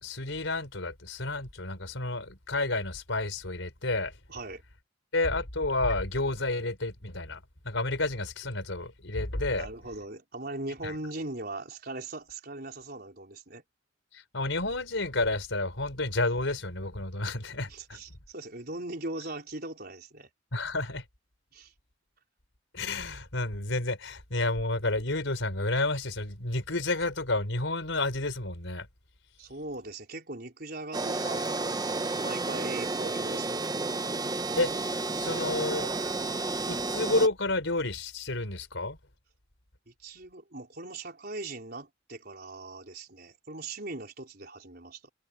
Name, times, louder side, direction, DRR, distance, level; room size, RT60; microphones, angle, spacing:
voice 1, 0.0-4.1 5.1-9.7 10.8-10.9 14.1-18.0 20.5-21.0 22.7-28.9 34.6-34.7 35.2-35.9 36.7-39.0, left 2 dB, 90° left, 4.4 m, -30 dB
voice 2, 4.3-4.6 9.5-13.6 17.7-20.3 21.5-21.7 29.4-33.7 39.9-45.1, right 2 dB, 55° right, 4.6 m, -40 dB
sound 1, 30.9-37.3, right 2 dB, 20° right, 0.8 m, -31 dB
head